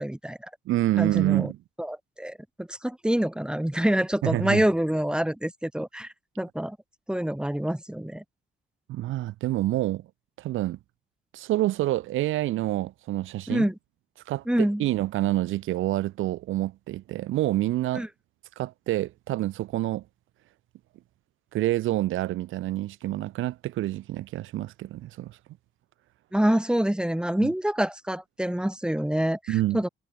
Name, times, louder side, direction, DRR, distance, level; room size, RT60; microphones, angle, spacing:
voice 1, 0.0-0.5 1.0-1.5 1.8-6.8 7.1-8.2 13.5-13.7 14.5-14.8 17.9-18.1 26.3-29.9, right 1 dB, 5° right, 5.4 m, -26 dB
voice 2, 0.7-1.6 4.2-4.6 8.9-10.0 10.4-10.8 11.3-13.7 14.3-18.1 18.6-20.0 21.5-25.4 27.4-27.5 29.5-29.8, right 15 dB, 90° right, 4.6 m, -27 dB
cardioid pair, 90°, 20 cm